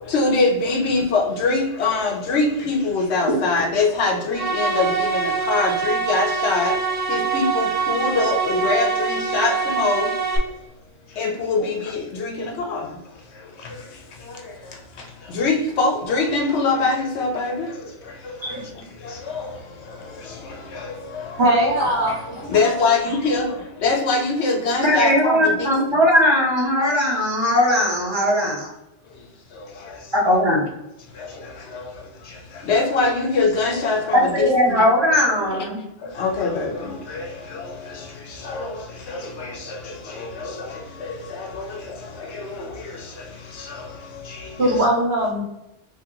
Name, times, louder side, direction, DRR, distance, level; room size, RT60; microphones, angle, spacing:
voice 1, 0.0-6.8 7.1-10.1 11.2-12.9 13.6-13.8 14.3-14.6 15.3-18.7 19.0-19.6 19.9-21.6 22.5-25.7 29.7-30.0 31.2-31.9 32.5-34.8 35.4-35.7 36.0-43.3 43.5-44.8, left 3 dB, 70° left, 0.9 m, -24 dB
sound 1, 4.3-10.4, right 5 dB, 50° right, 0.4 m, -24 dB
voice 2, 21.4-22.5 44.6-45.4, right 1 dB, 65° right, 1.3 m, -20 dB
voice 3, 24.8-28.7 30.1-30.6 34.1-35.8, left 1 dB, 25° right, 0.8 m, -19 dB
2.9 x 2.8 x 3.7 m
omnidirectional pair, 1.2 m